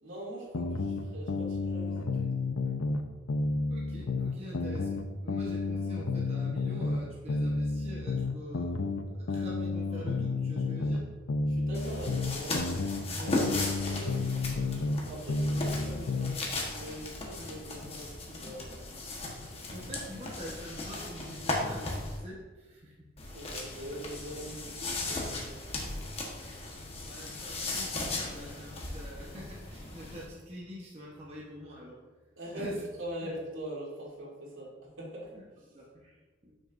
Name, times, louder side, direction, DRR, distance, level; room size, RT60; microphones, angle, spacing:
voice 1, 0.0-2.3 11.5-12.6 13.0-13.5 13.8-16.3 16.7-18.8 23.3-25.6 32.4-32.7 33.0-34.7 35.0-35.3, right 1 dB, 75° right, -5 dB, 2.6 m, -42 dB
sound 1, 0.5-3.0 3.3-7.0 7.3-11.0 11.3-15.0 15.3-16.4, left 3 dB, 85° left, 0.6 m, -31 dB
voice 2, 3.7-8.7 9.1-11.0 19.7-23.0 27.0-32.0 32.5-32.8 33.2-33.3 35.3-35.4 35.7-36.5, equal, 30° right, -4 dB, 1.0 m, -45 dB
sound 2, 11.7-22.2 23.2-30.3, left 2 dB, 30° left, 1.2 m, -37 dB
11.5 x 6.3 x 2.6 m, 1.3 s
head